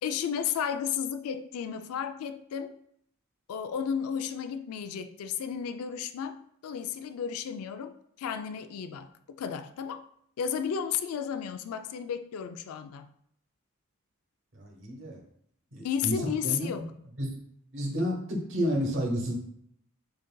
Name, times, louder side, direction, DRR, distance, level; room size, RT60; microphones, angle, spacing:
voice 1, 0.0-2.7 3.5-10.0 10.4-13.1 15.8-16.9, left 7 dB, 85° left, 10 dB, 0.3 m, -33 dB
voice 2, 14.5-15.2 15.7-16.7 17.2-17.4 17.7-19.3, equal, 60° right, 0 dB, 1.0 m, -30 dB
6.5 x 2.6 x 2.2 m, 0.69 s
head